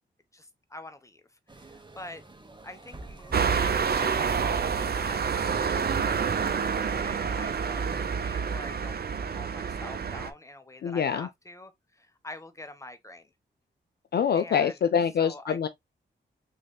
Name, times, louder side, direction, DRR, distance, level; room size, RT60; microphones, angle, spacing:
voice 1, 0.3-1.2 1.5-2.2 2.6-9.0 9.3-13.3 14.3-14.8 15.2-15.6, left 2 dB, 15° left, 1.0 m, -46 dB
sound 1, 1.5-8.7, right 3 dB, 25° right, 1.1 m, -48 dB
sound 2, 3.3-10.3, right 6 dB, 55° right, 0.6 m, -28 dB
voice 2, 10.8-11.3 14.1-15.7, left 7 dB, 55° left, 0.4 m, -25 dB
4.1 x 3.2 x 2.2 m
cardioid pair, 50°, 20 cm